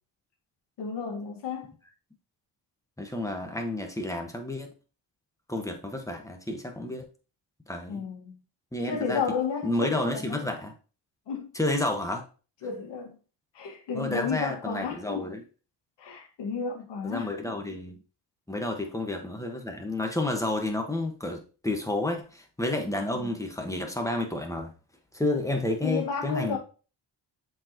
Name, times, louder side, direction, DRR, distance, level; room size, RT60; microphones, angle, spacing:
voice 1, 0.8-1.7 7.9-8.4 8.9-10.5 11.3-11.5 12.6-13.1 13.5-15.2 16.0-17.3 23.1-23.3 25.8-26.6, left 6 dB, 70° left, 2.0 m, -32 dB
voice 2, 3.0-4.7 5.5-7.1 7.7-8.0 8.7-9.2 9.6-10.7 11.5-12.2 13.9-15.4 17.0-18.0 18.5-24.7 25.1-26.6, left 1 dB, 5° left, 1.5 m, -30 dB
7.3 x 4.7 x 3.1 m
cardioid pair, 75°, 43 cm